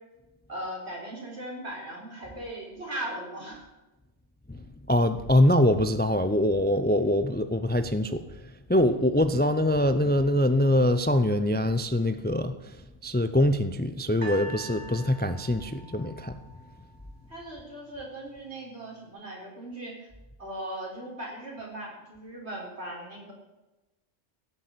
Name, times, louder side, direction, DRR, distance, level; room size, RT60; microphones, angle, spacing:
voice 1, 0.5-3.6 17.3-20.1 20.4-23.3, right 1 dB, 70° right, -2 dB, 4.5 m, -38 dB
voice 2, 4.9-8.2 8.7-12.8 13.0-16.4, left 1 dB, 15° left, 11 dB, 0.5 m, -24 dB
sound 1, 14.2-17.4 18.2-18.3, equal, 35° right, 2.7 m, -44 dB
16.5 x 7.2 x 8.5 m, 1.0 s
omnidirectional pair, 1.2 m